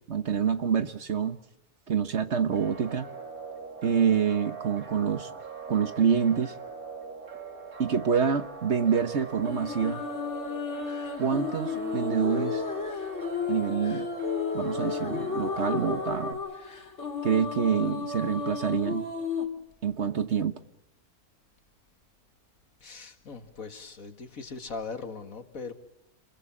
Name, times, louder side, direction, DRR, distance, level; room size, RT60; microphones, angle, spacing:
voice 1, 0.1-1.4 1.9-3.1 3.8-5.3 5.7-6.5 7.8-10.0 11.2-12.6 13.5-14.1 14.5-16.4 17.2-19.1 19.8-20.5, right 7 dB, 50° right, 10 dB, 1.3 m, -26 dB
sound 1, 2.5-16.3, right 5 dB, 75° right, 3.1 m, -42 dB
sound 2, 9.4-19.5, left 5 dB, 50° left, 3.0 m, -33 dB
voice 2, 22.8-25.7, left 4 dB, 65° left, 7 dB, 2.4 m, -40 dB
28.5 x 21.5 x 7.3 m, 0.89 s
omnidirectional pair, 1.5 m